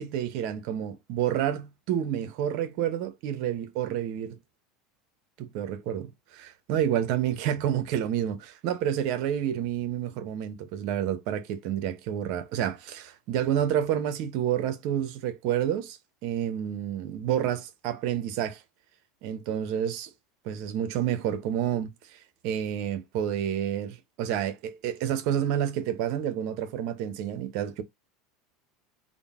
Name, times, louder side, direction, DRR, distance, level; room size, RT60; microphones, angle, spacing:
voice 1, 0.0-4.4 5.4-8.4 8.6-18.6 19.2-20.1 20.4-27.8, right 10 dB, 60° right, 0.8 m, -29 dB
3.8 x 2.1 x 3.5 m
supercardioid pair, 130°, 0 cm